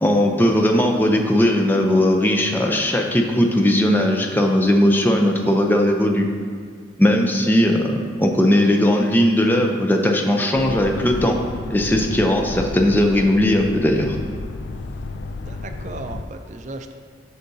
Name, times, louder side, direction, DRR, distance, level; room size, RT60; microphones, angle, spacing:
voice 1, 0.0-6.3 7.0-11.4 11.7-14.2, left 1 dB, 10° left, 2 dB, 0.5 m, -18 dB
sound 1, 10.6-16.2, left 3 dB, 75° left, 0.4 m, -32 dB
voice 2, 15.5-16.9, right 2 dB, 40° right, 6 dB, 0.4 m, -35 dB
8.3 x 6.5 x 2.7 m, 2.1 s
head